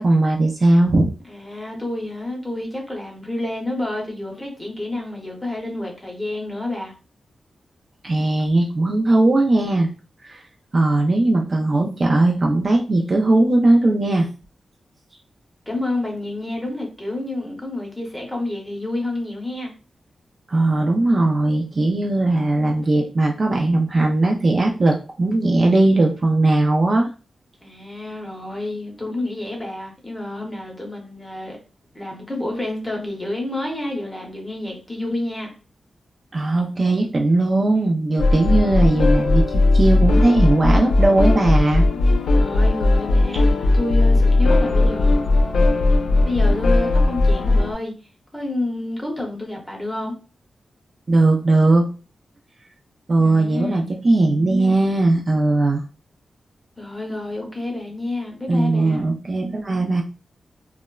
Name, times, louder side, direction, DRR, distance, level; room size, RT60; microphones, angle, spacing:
voice 1, 0.0-1.1 8.0-9.9 10.2-10.4 10.7-14.3 20.5-27.1 36.3-41.8 51.1-51.9 53.1-55.8 58.5-60.0, right 2 dB, 40° right, 1 dB, 0.3 m, -18 dB
voice 2, 1.2-6.9 15.7-19.7 27.6-31.6 31.9-35.5 38.3-38.9 42.3-45.2 46.3-47.9 48.3-50.1 53.2-53.8 56.8-59.0, left 1 dB, 10° left, 0 dB, 0.7 m, -29 dB
sound 1, 38.2-47.7, left 2 dB, 75° left, 0.4 m, -17 dB
3.0 x 2.0 x 2.2 m, 0.35 s
wide cardioid pair, 140°, 0 cm